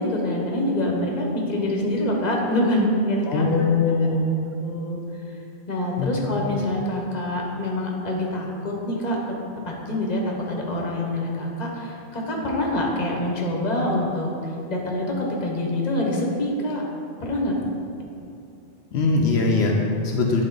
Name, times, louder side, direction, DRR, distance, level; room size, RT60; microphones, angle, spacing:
voice 1, 0.0-3.7 4.6-5.0 5.7-9.2 9.6-16.8 17.2-17.5, left 1 dB, 40° left, -1 dB, 1.0 m, -25 dB
voice 2, 3.3-4.3 6.0-6.4 18.9-20.5, left 3 dB, 75° left, 0 dB, 0.9 m, -21 dB
9.0 x 4.0 x 3.9 m, 2.6 s
omnidirectional pair, 1.1 m